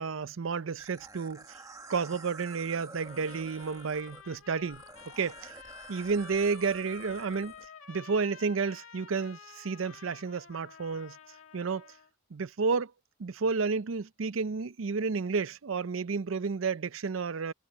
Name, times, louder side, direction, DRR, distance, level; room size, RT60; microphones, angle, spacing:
voice 1, 0.0-1.6 1.9-4.8 5.2-5.6 5.9-7.5 7.9-11.2 11.5-11.9 12.3-12.9 13.2-17.5, right 5 dB, 90° right, 0.6 m, -31 dB
sound 1, 0.8-7.7, right 3 dB, 20° right, 1.6 m, -49 dB
Trumpet, 3.0-12.1, left 7 dB, 85° left, 2.1 m, -51 dB
head